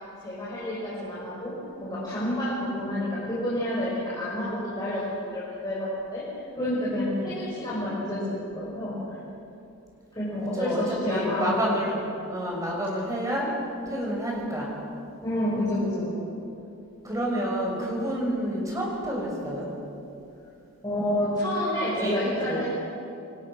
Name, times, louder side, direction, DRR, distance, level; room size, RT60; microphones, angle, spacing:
voice 1, 0.2-1.5 1.8-6.2 6.6-9.2 10.1-11.6 15.2-16.3 20.8-22.7, left 1 dB, 20° left, -8 dB, 5.7 m, -29 dB
voice 2, 10.5-11.9 12.3-13.5 13.9-14.7 17.0-19.7 22.0-22.7, equal, 15° right, -2 dB, 5.9 m, -29 dB
28.0 x 23.5 x 6.2 m, 2.7 s
head